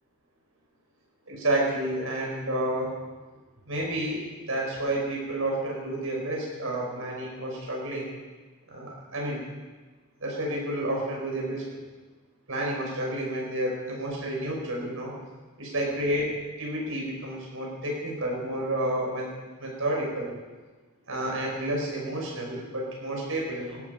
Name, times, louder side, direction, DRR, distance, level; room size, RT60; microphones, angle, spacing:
voice 1, 1.3-2.9 3.7-4.2 4.5-8.1 8.7-9.4 10.2-11.7 12.5-15.1 15.6-19.3 19.6-20.3 21.1-23.8, right 1 dB, 65° right, -2 dB, 6.1 m, -30 dB
18.5 x 13.5 x 5.4 m, 1.3 s
head